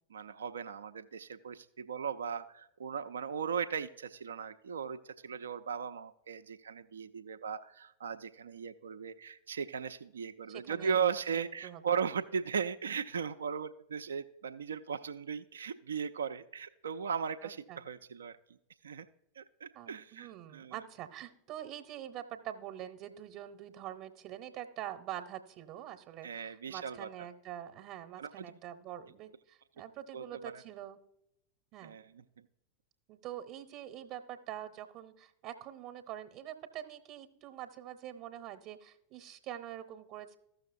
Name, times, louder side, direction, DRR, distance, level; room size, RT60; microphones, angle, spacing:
voice 1, 0.1-18.4 18.8-19.1 19.4-20.7 26.2-27.1 28.2-28.5 30.1-30.5 31.8-32.2, right 6 dB, 65° right, 8 dB, 0.4 m, -37 dB
voice 2, 10.5-11.1 11.6-11.9 17.4-17.8 19.7-31.0 31.7-32.0 33.1-40.4, right 11 dB, 40° right, 8 dB, 0.8 m, -45 dB
15.0 x 6.4 x 2.5 m, 0.82 s
figure-of-eight pair, 90°, 0 cm